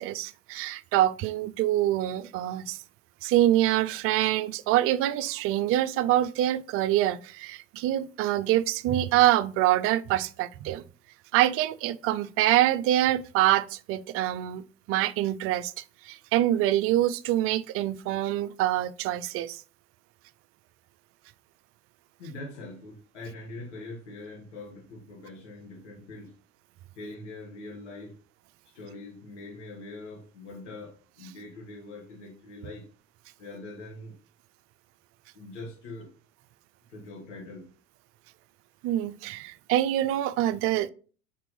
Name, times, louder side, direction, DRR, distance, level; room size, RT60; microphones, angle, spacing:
voice 1, 0.0-2.8 3.2-10.8 11.3-15.7 16.1-19.6 38.8-40.9, right 13 dB, 40° right, 0.5 m, -25 dB
voice 2, 22.2-26.3 27.0-28.2 28.7-32.9 33.4-34.2 35.3-36.1 36.9-37.7, left 2 dB, 65° left, 1.8 m, -43 dB
5.9 x 4.6 x 5.3 m
figure-of-eight pair, 75°, 37 cm